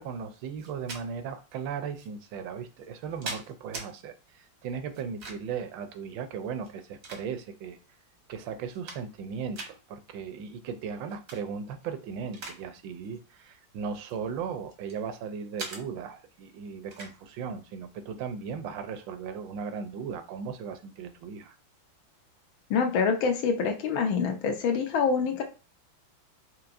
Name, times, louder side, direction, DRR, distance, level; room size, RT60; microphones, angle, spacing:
voice 1, 0.0-7.8 8.3-21.6, right 6 dB, 75° right, 9 dB, 1.2 m, -37 dB
sound 1, 0.6-1.0 2.0-2.1 2.8-3.9 4.9-5.6 6.6-7.6 8.2-8.3 8.6-9.3 9.5-9.7 11.1-11.4 11.8-12.6 12.9-13.2 13.9-15.0 15.6-15.8 16.9-17.2, right 3 dB, 55° right, 0.7 m, -41 dB
voice 2, 22.7-25.4, left 5 dB, 90° left, 5 dB, 1.6 m, -26 dB
4.7 x 2.9 x 2.5 m, 0.32 s
omnidirectional pair, 2.1 m